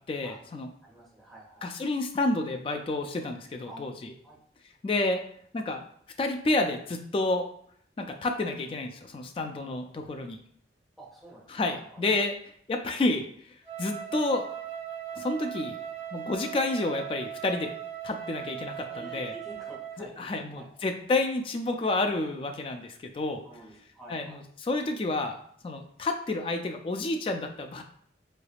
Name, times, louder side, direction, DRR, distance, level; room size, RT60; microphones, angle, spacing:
voice 1, 0.1-0.7 1.6-4.1 4.8-5.2 5.5-5.8 6.2-7.5 8.0-10.4 11.5-12.3 12.7-13.3 13.8-14.5 15.2-15.8 16.1-17.7 18.0-19.3 20.0-23.4 24.1-25.4 25.6-27.8, left 2 dB, 30° left, 5 dB, 0.3 m, -30 dB
voice 2, 0.8-1.7 3.7-3.8 4.2-4.4 11.0-12.0 18.9-20.8 23.4-24.4, right 2 dB, ahead, -5 dB, 0.9 m, -49 dB
Wind instrument woodwind instrument, 13.6-20.1, right 9 dB, 90° right, 1.0 m, -39 dB
3.7 x 3.3 x 2.3 m, 0.62 s
head